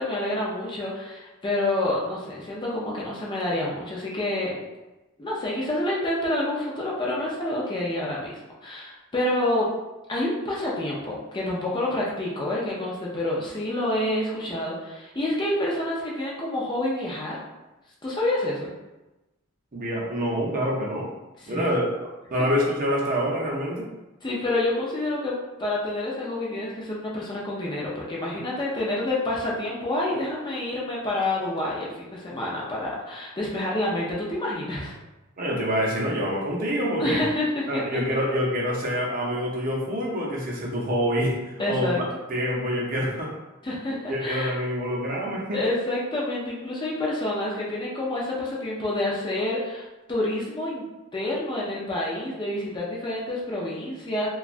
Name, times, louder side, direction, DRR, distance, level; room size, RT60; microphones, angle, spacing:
voice 1, 0.0-4.6 5.2-9.7 10.1-17.4 18.0-18.7 21.4-21.8 24.2-34.9 37.0-37.8 41.6-42.0 43.6-44.5 45.5-50.8 51.1-54.3, left 1 dB, 20° left, -5 dB, 0.5 m, -28 dB
voice 2, 19.7-21.1 21.5-21.9 22.3-23.9 35.4-37.2 37.7-42.0 42.3-43.3 44.1-45.6, equal, 40° right, -3 dB, 0.6 m, -26 dB
3.0 x 2.3 x 2.4 m, 1.0 s
head